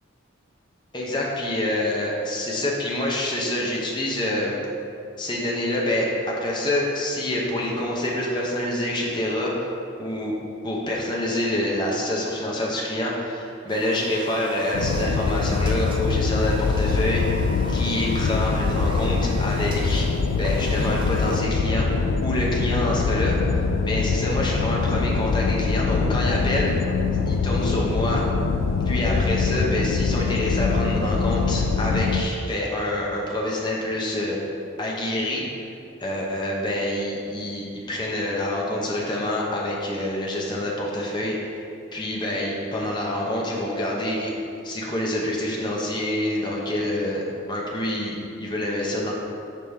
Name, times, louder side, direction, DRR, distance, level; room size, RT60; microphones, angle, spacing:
voice 1, 0.9-4.5 5.2-9.7 10.0-10.4 10.6-17.2 17.7-20.1 20.4-21.9 22.2-23.4 23.8-26.7 27.3-28.2 28.9-34.4 34.8-35.4 36.0-41.6 41.9-44.3 44.6-49.1, left 1 dB, 25° left, -3 dB, 0.7 m, -26 dB
sound 1, 13.7-21.4, right 1 dB, 25° right, 0.5 m, -39 dB
sound 2, 14.7-32.2, left 4 dB, 80° left, 0.3 m, -23 dB
5.6 x 4.9 x 3.4 m, 2.5 s
head